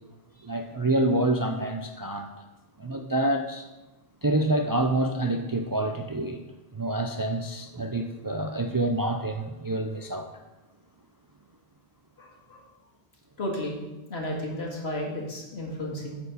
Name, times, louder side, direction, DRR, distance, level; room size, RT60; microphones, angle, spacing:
voice 1, 0.4-2.3 2.8-3.7 4.2-6.4 6.7-10.4, right 1 dB, 35° right, 5 dB, 0.4 m, -27 dB
voice 2, 12.2-12.6 13.4-13.7 14.1-16.2, left 1 dB, 80° left, -1 dB, 2.1 m, -33 dB
9.4 x 4.4 x 6.9 m, 1.1 s
omnidirectional pair, 1.1 m